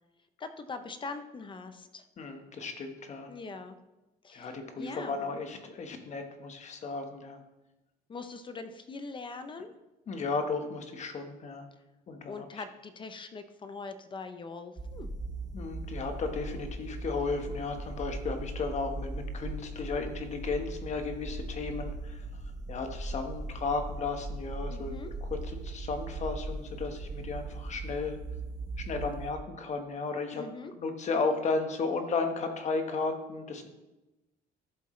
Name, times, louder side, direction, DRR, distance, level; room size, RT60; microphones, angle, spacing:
voice 1, 0.4-2.0 3.3-3.8 4.2-5.3 8.1-9.7 12.3-15.1 24.7-25.1 30.4-30.7, left 4 dB, 30° left, 9 dB, 0.7 m, -42 dB
voice 2, 2.2-3.3 4.3-7.4 10.1-11.7 12.1-12.6 15.5-22.2 22.7-24.9 25.2-28.2 28.9-30.4 30.7-33.7, left 4 dB, 45° left, 5 dB, 1.4 m, -34 dB
sound 1, 14.8-29.3, right 2 dB, 25° right, 1.3 m, -39 dB
13.5 x 7.6 x 3.2 m, 1.0 s
cardioid pair, 120°, 16 cm